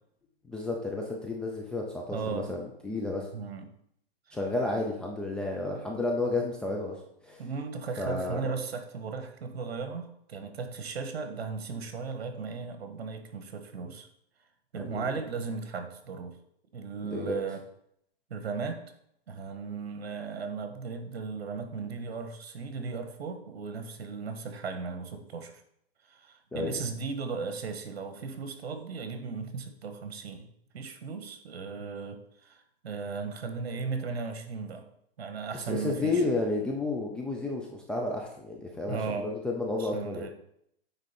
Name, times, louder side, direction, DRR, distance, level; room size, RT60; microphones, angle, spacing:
voice 1, 0.5-3.3 4.3-7.0 7.2-7.4 8.0-8.4 14.8-15.1 17.0-17.4 26.5-26.7 35.5-40.3, left 2 dB, 5° left, -1 dB, 0.3 m, -31 dB
voice 2, 2.1-2.5 3.3-3.7 4.3-4.4 7.4-14.1 14.7-16.4 16.7-17.6 18.3-18.8 19.3-25.6 26.1-34.9 35.2-36.2 38.9-39.3 39.8-40.3, right 5 dB, 80° right, 7 dB, 1.5 m, -36 dB
9.0 x 3.7 x 5.8 m, 0.73 s
hypercardioid pair, 140°, 31 cm